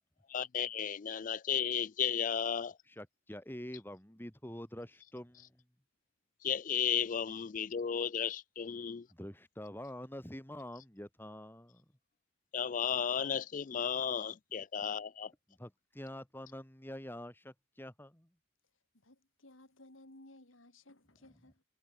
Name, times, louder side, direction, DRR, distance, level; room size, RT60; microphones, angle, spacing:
voice 1, 0.3-2.8 6.4-9.1 12.5-15.3, left 8 dB, 40° left, 0.4 m, -34 dB
voice 2, 2.9-5.6 9.1-11.8 15.6-18.3, left 1 dB, 10° left, 2.5 m, -46 dB
voice 3, 18.9-21.6, left 1 dB, 75° left, 3.6 m, -58 dB
head